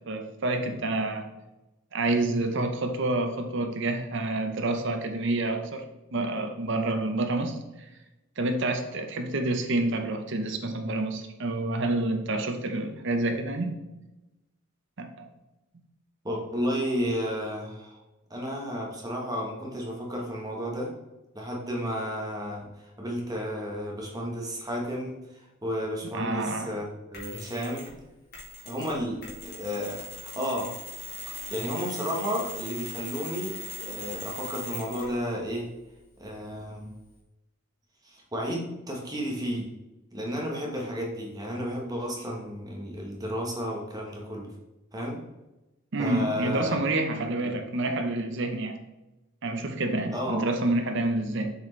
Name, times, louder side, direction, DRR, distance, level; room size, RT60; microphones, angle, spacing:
voice 1, 0.1-1.3 1.9-5.8 6.1-7.6 8.4-13.7 15.0-15.3 26.1-26.7 45.9-48.8 49.4-51.5, right 2 dB, 60° right, 6 dB, 0.8 m, -28 dB
voice 2, 16.2-18.0 18.3-20.9 21.3-27.9 28.6-30.7 31.5-35.7 36.2-36.9 38.0-39.7 40.1-44.5 44.9-45.2 46.0-46.8 47.4-47.5 50.1-50.6, equal, 20° right, -1 dB, 1.1 m, -32 dB
Mechanisms, 27.1-28.0 28.3-35.2, left 2 dB, 50° left, 1.9 m, -40 dB
6.8 x 4.3 x 3.2 m, 1.0 s
head